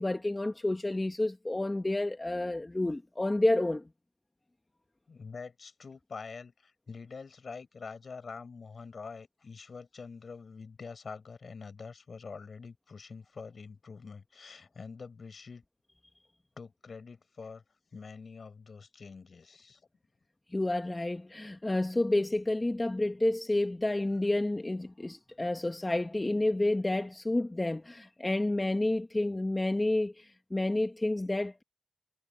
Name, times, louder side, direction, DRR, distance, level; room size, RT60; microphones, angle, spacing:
voice 1, 0.0-3.9 20.5-31.6, left 2 dB, 25° left, 1.5 m, -30 dB
voice 2, 5.1-15.6 16.6-17.6 17.9-19.8, left 5 dB, 60° left, 6.9 m, -45 dB
cardioid pair, 45°, 0 cm